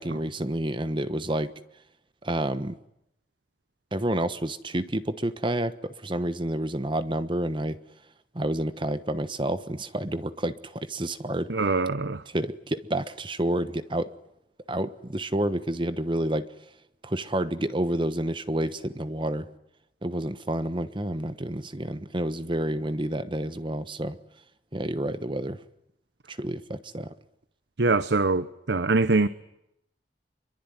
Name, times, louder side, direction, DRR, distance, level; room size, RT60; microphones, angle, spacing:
voice 1, 0.0-1.5 2.2-2.8 3.9-7.8 8.3-11.5 12.3-14.1 14.7-16.5 17.0-19.5 20.0-24.2 24.7-25.6 26.3-27.1, right 1 dB, 30° right, 1.2 m, -29 dB
voice 2, 11.5-12.2 27.8-29.3, right 3 dB, 80° right, 1.0 m, -23 dB
26.5 x 23.0 x 9.6 m
head